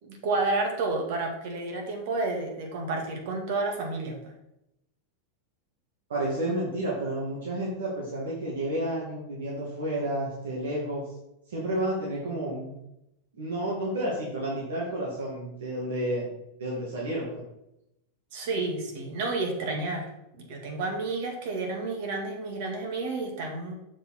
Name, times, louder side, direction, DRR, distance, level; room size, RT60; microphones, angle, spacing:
voice 1, 0.0-4.3 18.3-20.1 20.3-23.7, right 3 dB, 65° right, 2 dB, 2.1 m, -30 dB
voice 2, 6.1-11.1 11.5-12.7 13.3-16.3 16.6-17.4, right 1 dB, 85° right, -5 dB, 2.4 m, -31 dB
7.2 x 5.0 x 4.4 m, 0.85 s
supercardioid pair, 130°, 0 cm